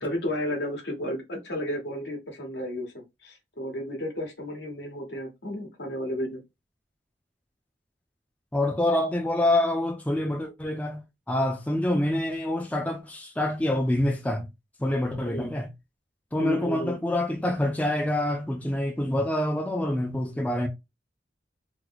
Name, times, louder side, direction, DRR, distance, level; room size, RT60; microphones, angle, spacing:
voice 1, 0.0-6.4 15.2-15.5 16.4-17.0, left 1 dB, 70° left, 1.2 m, -33 dB
voice 2, 8.5-14.5 14.8-15.7 16.3-20.7, left 1 dB, 10° left, 0.5 m, -26 dB
3.0 x 2.0 x 3.9 m
head